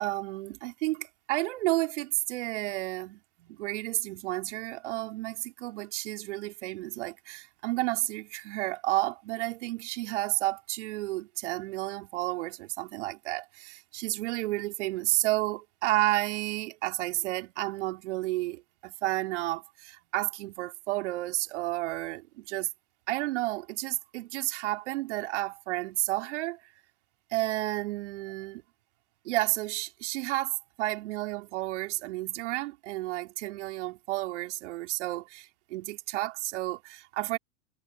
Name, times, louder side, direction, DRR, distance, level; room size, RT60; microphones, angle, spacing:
voice 1, 0.0-22.7 23.1-26.6 27.3-28.6 29.3-37.4, right 18 dB, 60° right, 3.8 m, -31 dB
hypercardioid pair, 95°, 39 cm